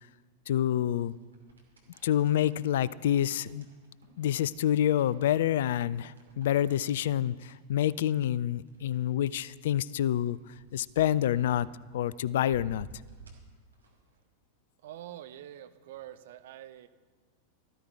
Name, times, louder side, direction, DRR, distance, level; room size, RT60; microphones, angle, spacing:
voice 1, 0.5-1.2 2.0-3.7 4.2-10.4 10.7-11.7 11.9-12.9, left 11 dB, 55° left, 21 dB, 0.3 m, -27 dB
sound 1, 0.5-14.2, right 4 dB, 75° right, 2.5 m, -56 dB
voice 2, 14.8-16.9, right 12 dB, 55° right, 10 dB, 0.7 m, -45 dB
14.0 x 13.5 x 4.5 m, 1.4 s
figure-of-eight pair, 90°, 0 cm